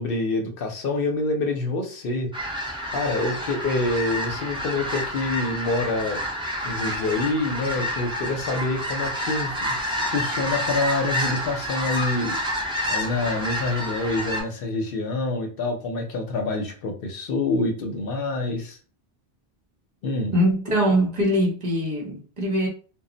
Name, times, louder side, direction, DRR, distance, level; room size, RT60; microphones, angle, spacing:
voice 1, 0.0-2.3 2.9-6.2 6.6-9.7 10.1-12.4 12.9-18.8 20.0-20.3, left 2 dB, 65° left, 0.7 m, -26 dB
sound 1, 2.3-14.4, equal, 5° right, 0.5 m, -29 dB
voice 2, 20.3-22.7, equal, 45° right, 0.8 m, -22 dB
2.2 x 2.0 x 3.7 m
omnidirectional pair, 1.1 m